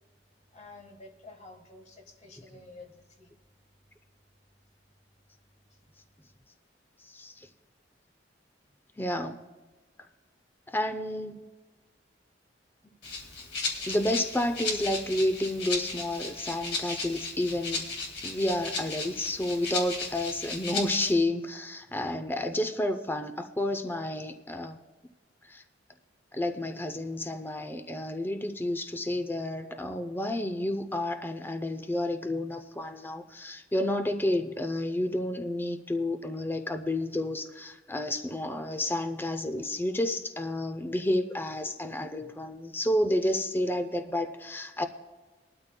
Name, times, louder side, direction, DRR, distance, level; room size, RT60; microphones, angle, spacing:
voice 1, 0.5-3.3, left 2 dB, 35° left, 3 dB, 1.5 m, -50 dB
voice 2, 7.0-7.5 9.0-9.4 10.7-11.4 13.9-17.9 18.2-24.8 25.5-25.6 26.3-44.9, left 1 dB, 10° left, 7 dB, 0.5 m, -30 dB
Rattle (instrument), 13.0-21.1, left 3 dB, 65° left, 2.2 m, -35 dB
20.5 x 12.5 x 2.2 m, 1.3 s
head